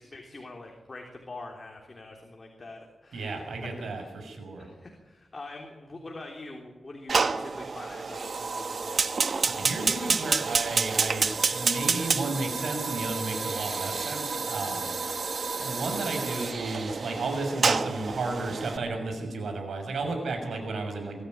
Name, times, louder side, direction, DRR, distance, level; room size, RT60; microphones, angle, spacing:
voice 1, 0.0-4.1 4.6-9.2, left 2 dB, 35° left, 1 dB, 3.4 m, -44 dB
voice 2, 3.1-4.7 9.4-15.0 15.6-21.2, right 3 dB, 85° right, 4 dB, 6.2 m, -33 dB
Fire, 7.1-18.8, right 4 dB, 55° right, 1.2 m, -29 dB
23.5 x 14.0 x 9.4 m, 1.2 s
wide cardioid pair, 120°, 0 cm